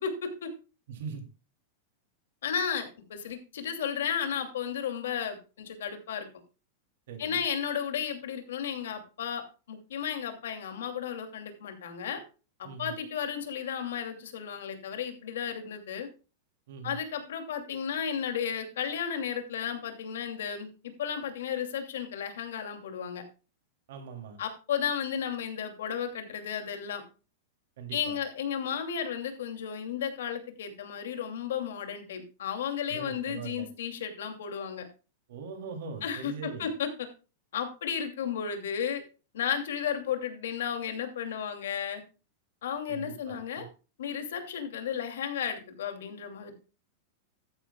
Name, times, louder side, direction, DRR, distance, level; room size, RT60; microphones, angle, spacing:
voice 1, 0.0-0.5 2.4-6.3 7.2-12.2 12.6-16.1 16.8-23.2 24.4-27.0 27.9-34.9 36.0-37.1 37.5-39.0 39.3-42.0 42.6-43.7 44.0-46.5, left 8 dB, 85° left, 6 dB, 2.6 m, -33 dB
voice 2, 0.9-1.2 7.1-7.4 12.6-12.9 16.7-17.0 23.9-24.4 27.8-28.2 32.9-33.7 35.3-36.7 42.9-43.7, right 6 dB, 60° right, 4 dB, 2.8 m, -41 dB
13.5 x 10.0 x 2.3 m, 0.33 s
supercardioid pair, 175°, 0 cm